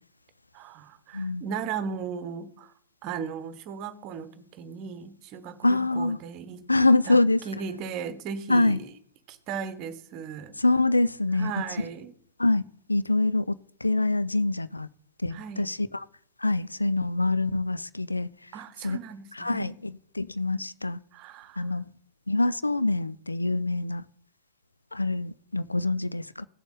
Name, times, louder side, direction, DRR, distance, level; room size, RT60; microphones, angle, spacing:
voice 1, 0.5-2.7 3.0-6.7 7.1-7.2 7.4-8.9 9.3-10.6 11.3-12.1 15.3-15.7 18.5-19.8 21.1-21.7, right 6 dB, 40° right, 1.1 m, -37 dB
voice 2, 1.1-1.4 5.6-6.2 6.7-7.4 8.5-8.8 10.6-11.5 11.8-11.9 12.4-12.6 12.9-13.6 13.8-14.9 15.2-16.0 16.4-18.3 18.8-19.0 19.3-21.0 21.6-21.8 22.3-24.0 24.9-26.5, left 2 dB, 85° left, 0.4 m, -25 dB
16.0 x 7.2 x 4.0 m
figure-of-eight pair, 90°, 0 cm